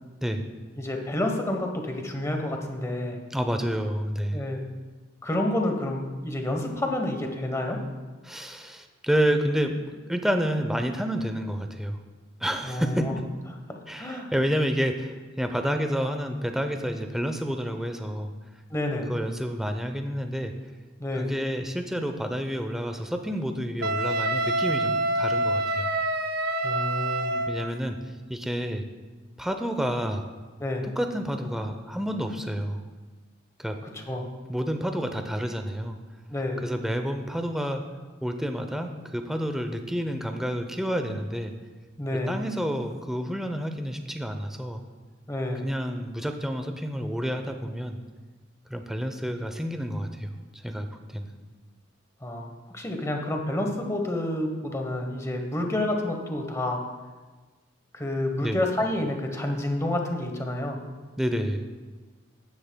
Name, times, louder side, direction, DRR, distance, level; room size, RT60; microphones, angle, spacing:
voice 1, 0.8-3.2 4.3-4.6 5.2-7.8 12.6-13.1 13.7-14.3 18.7-19.1 21.0-21.3 26.6-27.4 30.6-30.9 33.9-34.3 36.3-36.6 42.0-42.4 45.3-45.7 52.2-56.8 57.9-60.8, left 1 dB, 15° left, 3 dB, 1.0 m, -29 dB
voice 2, 3.3-4.4 8.2-9.8 10.1-12.0 12.4-13.1 13.9-18.3 19.1-20.5 21.1-25.9 27.5-28.0 28.3-28.8 29.4-30.2 30.8-32.8 33.6-33.8 34.5-36.0 36.6-37.8 38.2-41.5 42.3-44.8 45.6-48.0 48.7-51.3 58.4-58.6 61.2-61.6, equal, ahead, 6 dB, 0.6 m, -29 dB
Wind instrument woodwind instrument, 23.8-27.7, right 1 dB, 50° right, 0.6 m, -26 dB
15.0 x 10.0 x 2.2 m, 1.3 s
head